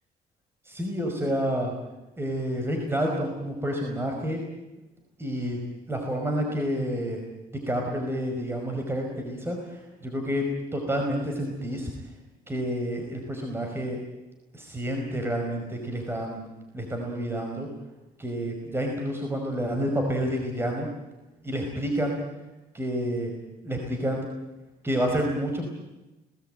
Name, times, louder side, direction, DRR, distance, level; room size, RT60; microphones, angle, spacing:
voice 1, 0.6-1.7 2.2-4.4 5.2-5.6 5.9-7.2 7.7-10.4 10.7-11.9 12.5-14.0 14.5-16.4 16.7-17.7 18.2-20.9 21.4-22.2 22.7-23.3 23.6-24.2 24.8-25.7, equal, 15° right, 2 dB, 5.0 m, -29 dB
30.0 x 19.5 x 9.0 m, 1.0 s
cardioid pair, 110°, 17 cm